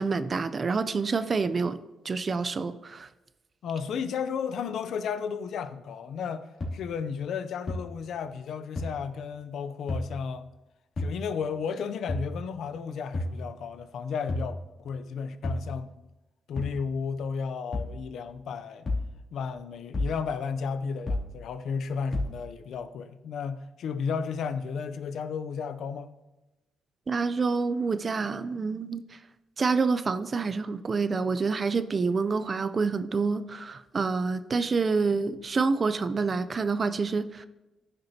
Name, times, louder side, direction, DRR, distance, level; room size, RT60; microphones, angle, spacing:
voice 1, 0.0-1.8 2.0-3.1 27.1-29.0 29.6-37.5, right 4 dB, 35° right, 0.5 m, -27 dB
voice 2, 3.6-10.5 11.0-16.0 16.5-18.9 19.3-26.1, left 6 dB, 75° left, 0.5 m, -33 dB
sound 1, 6.6-6.7 7.7-7.8 8.8-8.9 9.9-10.0 11.0-11.1 12.1-12.3 13.1-13.4 14.3-14.5 15.4-15.7 16.6-16.8 17.7-17.9 18.9-19.1 19.9-20.2 21.1-21.3 22.1-22.3, left 2 dB, 45° left, 2.7 m, -30 dB
14.0 x 6.7 x 2.8 m
cardioid pair, 115°, 0 cm